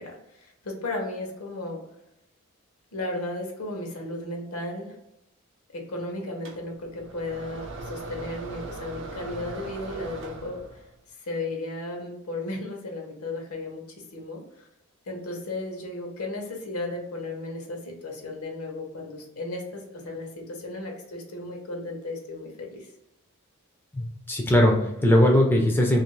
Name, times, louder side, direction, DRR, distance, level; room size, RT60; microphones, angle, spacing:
voice 1, 0.0-1.8 2.9-5.0 5.7-10.6 11.3-13.8 14.1-14.7 15.1-22.9, left 2 dB, 75° left, 1 dB, 0.8 m, -35 dB
sound 1, 6.4-10.9, right 2 dB, 55° right, 0.5 m, -39 dB
voice 2, 23.9-26.0, left 1 dB, 10° left, 0 dB, 0.4 m, -20 dB
2.7 x 2.4 x 3.0 m, 0.84 s
head